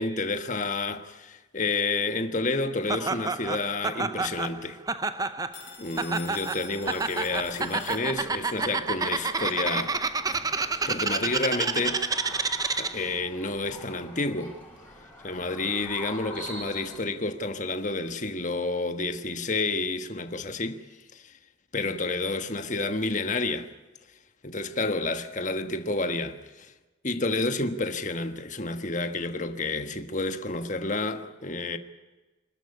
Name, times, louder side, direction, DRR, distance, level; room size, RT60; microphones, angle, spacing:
voice 1, 0.0-4.8 5.8-10.0 10.9-12.4 12.8-14.6 15.2-20.8 21.1-21.3 21.7-23.7 24.4-26.7 27.0-31.8, left 3 dB, 40° left, 1.3 m, -30 dB
Laughter, 2.9-13.1, right 4 dB, 20° right, 0.7 m, -29 dB
Telephone, 5.5-8.5, left 7 dB, 70° left, 3.9 m, -47 dB
sound 1, 6.8-17.0, left 1 dB, 10° left, 6.4 m, -45 dB
26.0 x 13.5 x 9.8 m
head